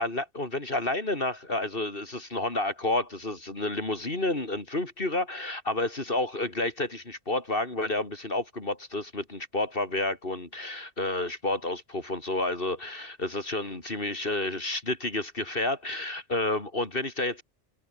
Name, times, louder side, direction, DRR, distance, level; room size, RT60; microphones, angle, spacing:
voice 1, 0.0-17.4, left 2 dB, 50° left, 3.8 m, -30 dB
omnidirectional pair, 1.2 m